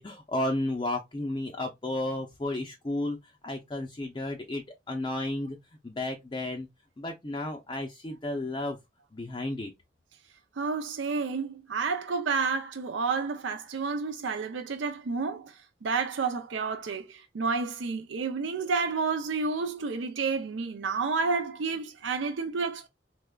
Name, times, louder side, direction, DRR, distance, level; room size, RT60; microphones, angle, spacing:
voice 1, 0.0-3.2 3.4-5.6 5.8-6.7 7.0-8.8 9.1-9.7, left 1 dB, 25° left, 0.4 m, -32 dB
voice 2, 10.6-22.9, right 4 dB, 85° right, 0.5 m, -30 dB
3.5 x 3.0 x 2.2 m
head